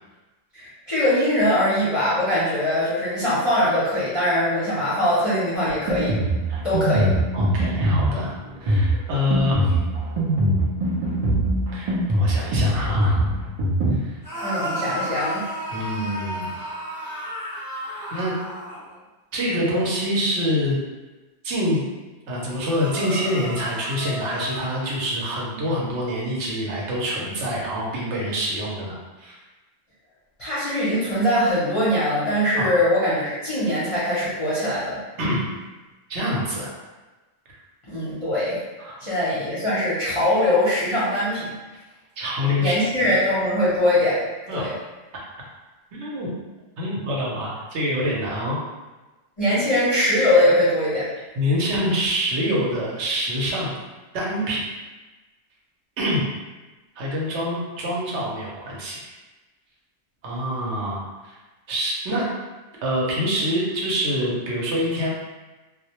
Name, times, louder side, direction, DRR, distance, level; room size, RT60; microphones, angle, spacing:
voice 1, 0.5-6.2 6.6-7.1 14.4-15.4 30.4-35.0 37.9-38.6 39.0-41.5 42.6-44.2 44.5-44.7 49.4-51.1, left 1 dB, 35° left, -11 dB, 0.5 m, -22 dB
Drum kit, 5.7-14.0, right 1 dB, 55° right, 0.4 m, -22 dB
voice 2, 7.3-8.3 8.6-9.8 11.7-13.2 14.0-14.2 15.7-16.5 18.1-18.3 19.3-20.8 21.4-21.8 22.3-29.4 32.6-32.7 35.2-35.5 36.1-36.7 38.8-39.0 42.2-42.8 44.5-44.7 45.9-46.3 46.8-48.6 51.4-53.8 54.1-54.7 56.0-56.2 57.0-59.0 60.2-61.0 61.2-61.4 61.7-62.3 62.8-65.1, equal, 70° right, -4 dB, 0.9 m, -26 dB
sound 1, 14.2-19.0 22.7-24.7, equal, 20° right, 0.8 m, -32 dB
2.1 x 2.0 x 2.8 m, 1.2 s
omnidirectional pair, 1.2 m